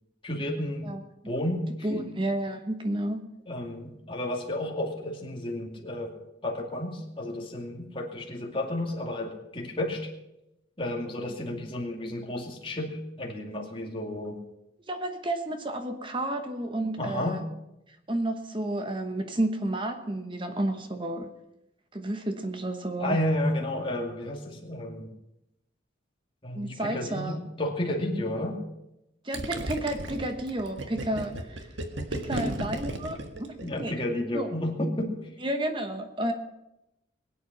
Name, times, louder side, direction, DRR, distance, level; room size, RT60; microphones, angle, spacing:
voice 1, 0.2-0.9 1.2-1.6 1.9-2.1 3.5-6.1 6.4-10.1 10.8-14.4 17.0-17.4 23.0-25.1 26.4-28.6 32.3-32.7 33.6-35.3, left 1 dB, 25° left, -1 dB, 2.4 m, -32 dB
voice 2, 1.8-3.2 14.9-17.4 18.1-21.3 21.9-23.2 26.5-27.4 29.2-31.7 32.1-33.9 34.3-34.5 35.4-36.3, right 1 dB, 25° right, 6 dB, 1.1 m, -31 dB
Gurgling, 29.3-34.0, right 1 dB, 75° right, 1.6 m, -34 dB
21.5 x 8.5 x 6.1 m, 0.89 s
head